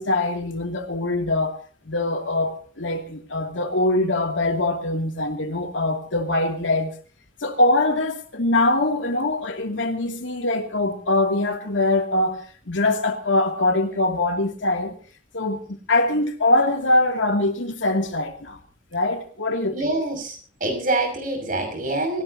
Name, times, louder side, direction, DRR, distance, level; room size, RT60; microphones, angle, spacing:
voice 1, 0.0-1.6 1.9-7.0 7.4-15.0 15.3-18.6 18.9-19.9, left 2 dB, 90° left, 2.6 m, -23 dB
voice 2, 19.7-22.2, right 2 dB, 45° right, 6.4 m, -25 dB
24.5 x 17.0 x 2.8 m
head